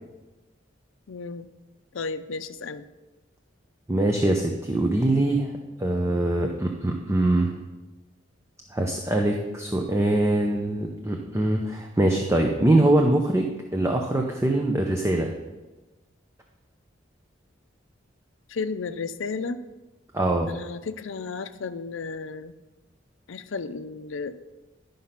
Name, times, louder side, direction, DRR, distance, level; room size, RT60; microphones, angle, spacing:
voice 1, 1.1-1.5 1.9-2.9 18.5-19.6 20.5-22.5 23.3-24.4, left 4 dB, 85° left, 12 dB, 0.5 m, -33 dB
voice 2, 3.9-5.5 5.8-7.6 8.7-15.3 20.1-20.5, right 1 dB, 15° right, 2 dB, 0.6 m, -23 dB
11.5 x 5.2 x 5.7 m, 1.1 s
head